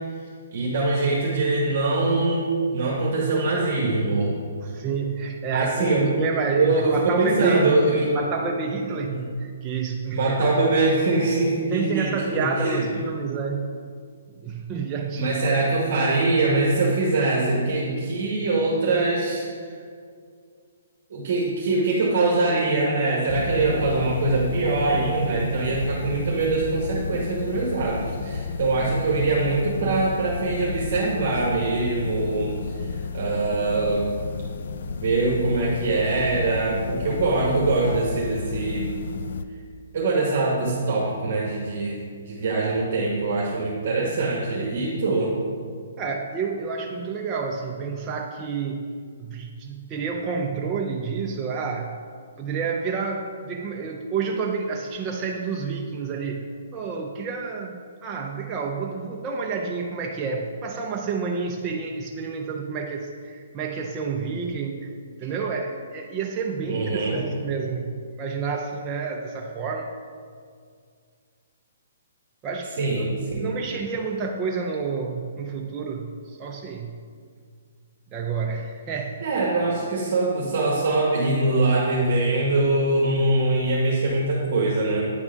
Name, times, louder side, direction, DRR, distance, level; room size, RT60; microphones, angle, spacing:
voice 1, 0.5-4.3 5.5-6.1 6.5-8.1 9.1-9.2 10.1-13.1 15.1-19.4 21.1-34.1 35.0-38.9 39.9-42.0 42.3-45.3 66.7-67.2 72.8-73.5 79.2-85.1, right 2 dB, 50° right, -3 dB, 1.2 m, -23 dB
voice 2, 4.6-7.7 8.1-10.6 11.7-13.8 14.3-15.4 46.0-48.9 49.2-52.0 52.4-56.4 56.7-64.9 65.2-69.9 72.4-76.9 78.1-79.2, right 5 dB, 20° right, 0 dB, 0.4 m, -29 dB
sound 1, 23.3-39.4, left 4 dB, 60° left, 0.3 m, -32 dB
9.2 x 3.7 x 5.0 m, 2.1 s
hypercardioid pair, 165°, 0 cm